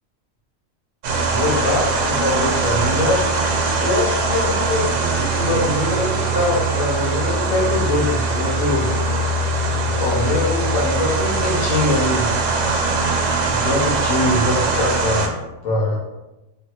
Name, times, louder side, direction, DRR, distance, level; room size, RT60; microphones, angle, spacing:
sound 1, 1.0-15.3, right 3 dB, 70° right, 0.9 m, -21 dB
voice 1, 1.3-8.9 9.8-12.3 13.5-15.3 15.6-16.0, left 2 dB, 75° left, -4 dB, 1.2 m, -23 dB
3.8 x 2.0 x 2.8 m, 0.99 s
omnidirectional pair, 1.4 m